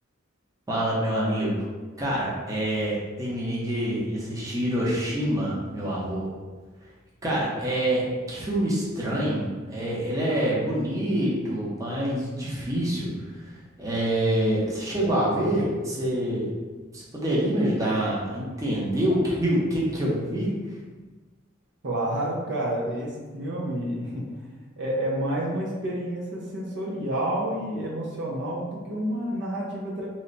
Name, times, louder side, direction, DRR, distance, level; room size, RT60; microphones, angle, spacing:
voice 1, 0.7-1.6 2.0-6.3 7.2-16.5 16.9-20.5, right 1 dB, 15° right, -6 dB, 0.7 m, -26 dB
voice 2, 21.8-24.5 24.8-30.1, right 1 dB, 60° right, -4 dB, 0.7 m, -29 dB
3.1 x 2.2 x 3.9 m, 1.3 s
head